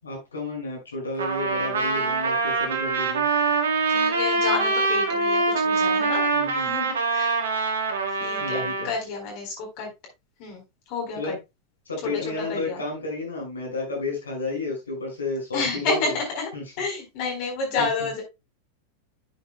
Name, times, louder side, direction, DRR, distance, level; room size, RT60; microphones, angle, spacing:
voice 1, 0.0-3.3 6.3-6.7 8.4-8.9 11.2-11.4 11.9-16.2 16.5-16.6 17.8-17.9, left 2 dB, 75° left, 0 dB, 5.5 m, -31 dB
Trumpet, 1.2-8.9, right 3 dB, 65° right, 1.6 m, -24 dB
voice 2, 3.9-6.3 6.5-7.4 8.1-8.6 8.8-9.9 10.4-11.3 12.0-12.8 15.5-16.5 16.8-18.2, left 4 dB, 45° left, 1 dB, 4.0 m, -30 dB
10.5 x 8.1 x 2.2 m, 0.23 s
figure-of-eight pair, 90°, 0 cm